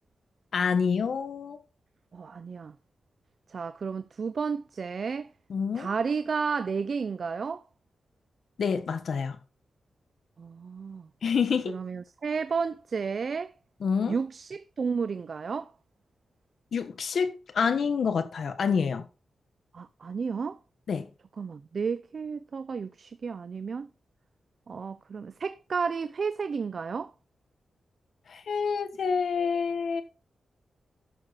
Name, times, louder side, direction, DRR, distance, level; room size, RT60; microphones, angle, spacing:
voice 1, 0.5-1.6 5.5-5.9 8.6-9.4 11.2-11.7 13.8-14.2 16.7-19.1 20.9-21.1 28.3-30.0, left 6 dB, 65° left, 1.3 m, -27 dB
voice 2, 2.1-2.7 3.5-5.3 5.7-7.6 10.4-11.1 11.7-13.5 14.1-15.7 19.7-20.6 21.4-23.9 24.7-27.1, right 5 dB, 50° right, 0.5 m, -32 dB
12.0 x 6.6 x 4.1 m
wide cardioid pair, 135°, 0 cm